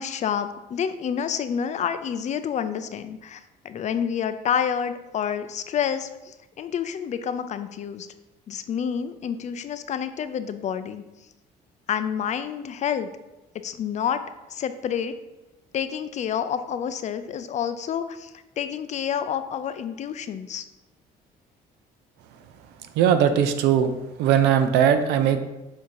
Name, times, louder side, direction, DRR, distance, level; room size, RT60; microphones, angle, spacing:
voice 1, 0.0-8.1 8.5-11.0 11.9-13.1 13.6-14.2 14.5-15.1 15.7-20.7, left 8 dB, 45° left, 11 dB, 0.4 m, -28 dB
voice 2, 22.9-23.9 24.2-25.4, right 8 dB, 90° right, 9 dB, 0.6 m, -19 dB
7.5 x 2.8 x 4.6 m, 1.0 s
cardioid pair, 110°, 17 cm